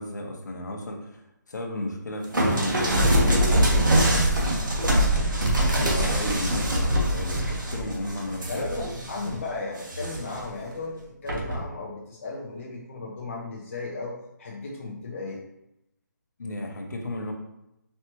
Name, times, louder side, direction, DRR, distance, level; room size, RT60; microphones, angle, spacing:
voice 1, 0.0-4.6 5.2-8.6 16.4-17.3, left 1 dB, 65° left, 2 dB, 0.9 m, -34 dB
sound 1, 2.3-9.3 9.8-10.4 11.3-11.6, right 1 dB, 90° right, 1.3 m, -23 dB
voice 2, 8.5-15.4, left 3 dB, 40° left, -3 dB, 0.7 m, -35 dB
4.4 x 3.2 x 3.0 m, 0.85 s
hypercardioid pair, 165°, 10 cm